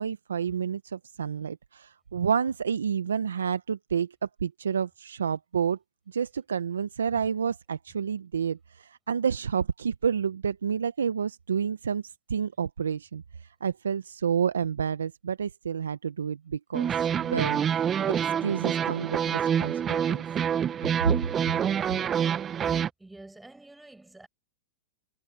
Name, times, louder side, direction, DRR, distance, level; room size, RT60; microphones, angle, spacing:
voice 1, 0.0-5.8 6.1-16.9 17.2-20.2 21.0-21.1, right 7 dB, 90° right, 0.7 m, -29 dB
sound 1, 16.7-22.9, right 8 dB, 25° right, 0.6 m, -27 dB
voice 2, 23.0-24.3, right 2 dB, 5° right, 7.5 m, -47 dB
hypercardioid pair, 115°, 0 cm